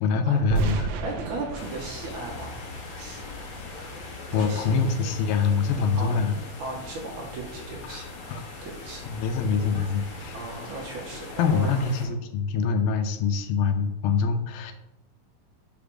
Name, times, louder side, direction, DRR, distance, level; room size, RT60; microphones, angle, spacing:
voice 1, 0.0-0.9 4.3-6.3 7.9-8.4 9.1-10.4 11.4-14.7, left 5 dB, 80° left, 7 dB, 2.4 m, -25 dB
sound 1, 0.5-3.5, right 5 dB, 90° right, 1.6 m, -32 dB
voice 2, 1.0-2.6 2.9-3.2 4.3-4.7 6.0-6.2 6.6-9.1 10.3-12.0, right 3 dB, 60° right, -1 dB, 2.6 m, -37 dB
sound 2, 1.5-12.1, left 3 dB, 55° left, 1.6 m, -40 dB
5.8 x 5.2 x 6.2 m, 0.92 s
omnidirectional pair, 4.4 m